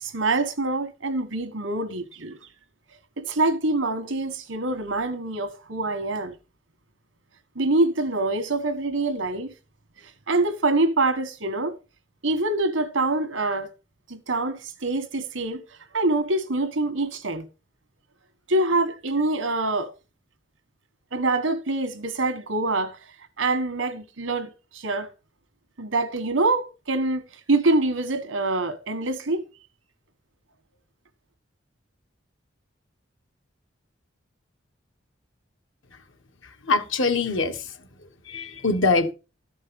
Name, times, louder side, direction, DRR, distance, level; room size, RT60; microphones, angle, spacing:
voice 1, 0.0-2.4 3.2-6.3 7.5-9.5 10.3-11.7 12.2-13.7 14.1-15.6 15.9-17.5 18.5-19.9 21.1-23.0 23.4-25.1 25.8-27.2 27.5-29.4, right 2 dB, 90° right, 1.5 m, -25 dB
voice 2, 36.7-37.7 38.3-39.1, left 3 dB, 90° left, 1.5 m, -23 dB
13.0 x 5.5 x 5.3 m
head